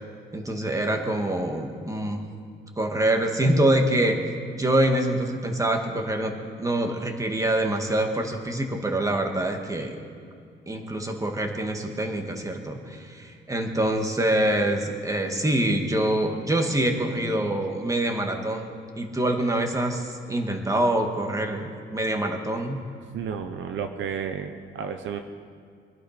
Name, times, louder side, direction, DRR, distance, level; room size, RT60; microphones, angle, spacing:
voice 1, 0.3-2.3 2.8-4.2 4.6-6.3 6.6-10.0 10.7-18.7 19.0-22.8, right 1 dB, 15° right, 3 dB, 2.2 m, -25 dB
voice 2, 23.1-25.2, right 7 dB, 70° right, 7 dB, 0.9 m, -32 dB
24.0 x 11.5 x 5.3 m, 2.3 s
cardioid pair, 90°, 20 cm